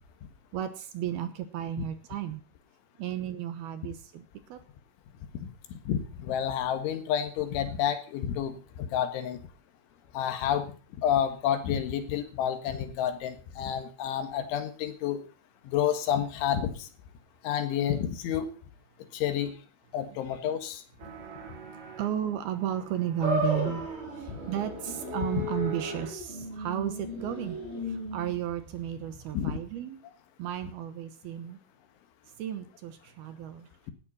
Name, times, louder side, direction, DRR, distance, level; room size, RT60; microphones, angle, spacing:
voice 1, 0.5-2.4 3.0-4.6 21.6-23.8 24.2-27.6 27.9-30.0 30.4-31.6 32.4-33.7, right 11 dB, 70° right, 10 dB, 2.7 m, -33 dB
voice 2, 5.4-9.4 10.1-15.2 15.7-16.9 17.4-18.5 19.1-19.6 19.9-20.8 24.3-24.4 25.3-25.5 29.3-29.6, left 9 dB, 85° left, 8 dB, 4.1 m, -30 dB
sound 1, 21.0-26.2, right 6 dB, 55° right, 3.2 m, -46 dB
sound 2, 23.2-29.6, left 1 dB, 15° right, 4.5 m, -35 dB
17.5 x 11.5 x 4.2 m, 0.38 s
omnidirectional pair, 5.3 m